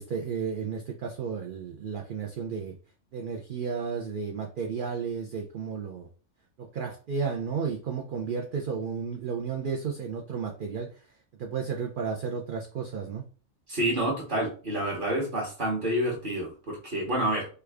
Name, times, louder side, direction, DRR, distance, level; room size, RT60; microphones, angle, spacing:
voice 1, 0.0-2.7 3.1-6.1 6.6-10.9 11.4-13.2, right 6 dB, 70° right, 1 dB, 0.5 m, -33 dB
voice 2, 13.7-17.5, right 1 dB, 40° right, -2 dB, 1.1 m, -28 dB
3.2 x 2.4 x 3.4 m, 0.38 s
omnidirectional pair, 1.4 m